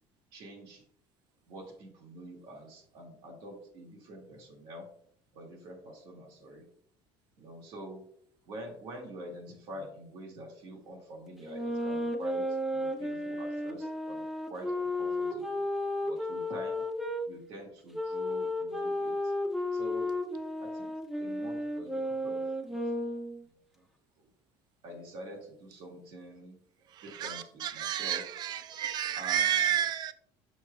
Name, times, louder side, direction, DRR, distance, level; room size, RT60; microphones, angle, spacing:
voice 1, 0.3-0.8 1.5-4.9 5.3-6.6 7.4-8.1 8.5-15.5 16.1-16.9 17.3-19.1 19.7-20.2 20.6-20.9 21.2-22.8 24.8-26.6 27.0-28.3 29.2-29.5, equal, 60° right, 2.0 m, -46 dB
sound 1, 11.4-17.2 17.9-23.4, left 1 dB, 5° right, 0.7 m, -33 dB
voice 2, 27.0-30.1, right 10 dB, 45° right, 0.5 m, -31 dB
6.5 x 6.2 x 2.3 m
cardioid pair, 140°, 10 cm